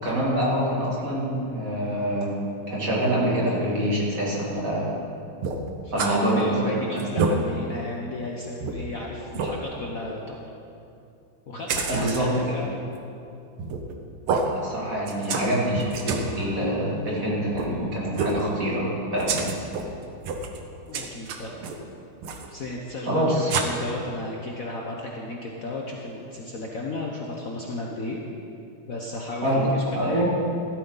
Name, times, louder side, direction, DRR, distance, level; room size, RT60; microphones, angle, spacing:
voice 1, 0.0-2.4 2.7-4.9 5.9-7.0 11.9-12.5 14.5-19.5 23.1-23.5 29.4-29.6 30.0-30.3, right 1 dB, 40° right, -5 dB, 2.8 m, -25 dB
sound 1, 5.4-6.1 6.5-6.6 7.0-7.3 7.9-8.0 8.6-8.7 9.3-9.5 11.7-12.2 13.6-13.9 14.3-14.5 15.1-15.5 15.7-16.3 17.5-17.7 18.1-18.4 19.1-19.9 20.2-20.6 20.9-21.8 22.2-22.5 23.5-23.6, right 5 dB, 85° right, 1.9 m, -27 dB
voice 2, 5.8-10.4 11.5-12.7 20.9-21.6 22.5-28.2 28.9-30.3, left 2 dB, 50° left, -2 dB, 1.2 m, -34 dB
15.0 x 12.5 x 4.0 m, 2.7 s
omnidirectional pair, 2.3 m